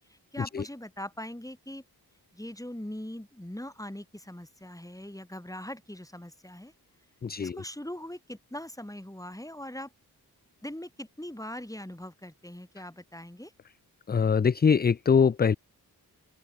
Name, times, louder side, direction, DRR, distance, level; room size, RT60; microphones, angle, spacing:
voice 1, 0.1-1.8 2.3-6.7 7.4-9.9 10.6-13.5, left 1 dB, 10° left, 5.9 m, -41 dB
voice 2, 7.2-7.6 14.1-15.6, left 6 dB, 25° left, 0.4 m, -23 dB
open air
cardioid pair, 55°, 38 cm